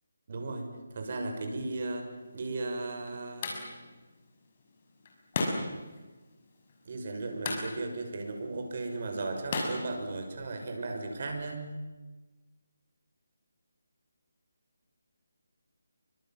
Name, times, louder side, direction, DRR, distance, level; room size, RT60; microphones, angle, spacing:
voice 1, 0.3-3.6 6.8-11.7, right 2 dB, 45° right, 4 dB, 6.4 m, -36 dB
sound 1, 2.2-10.7, left 3 dB, 35° left, 6.2 m, -39 dB
28.0 x 25.0 x 7.6 m, 1.2 s
figure-of-eight pair, 170°, 0 cm